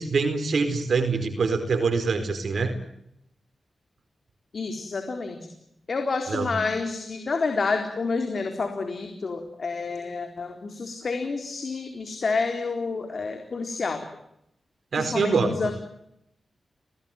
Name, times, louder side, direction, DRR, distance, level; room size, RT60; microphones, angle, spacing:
voice 1, 0.0-2.7 6.3-6.6 14.9-15.5, right 4 dB, 70° right, 7 dB, 4.6 m, -24 dB
voice 2, 4.5-5.5 5.9-14.0 15.0-15.7, left 4 dB, 60° left, 5 dB, 4.1 m, -29 dB
27.0 x 19.5 x 9.2 m, 0.78 s
cardioid pair, 45°, 0 cm